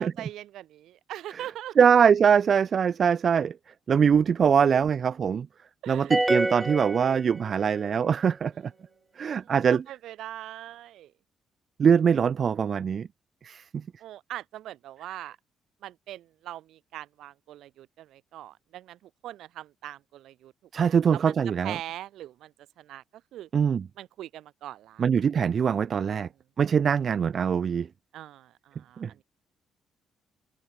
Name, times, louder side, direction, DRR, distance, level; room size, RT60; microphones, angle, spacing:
voice 1, 0.0-1.8 5.8-6.1 9.4-11.1 14.0-15.4 15.8-19.0 19.2-20.5 20.8-21.4 21.6-22.5 22.8-23.0 23.3-23.5 24.0-25.1 26.0-26.3 28.1-29.0, right 13 dB, 80° right, 5.9 m, -41 dB
voice 2, 1.8-3.5 3.9-5.5 5.9-8.5 9.2-9.8 11.8-13.1 13.4-13.6 20.7-21.8 23.5-23.9 25.0-26.3 26.6-27.9 29.0-29.1, right 7 dB, 50° right, 3.9 m, -22 dB
sound 1, 6.1-7.8, right 2 dB, 15° right, 1.8 m, -27 dB
cardioid pair, 90°, 0 cm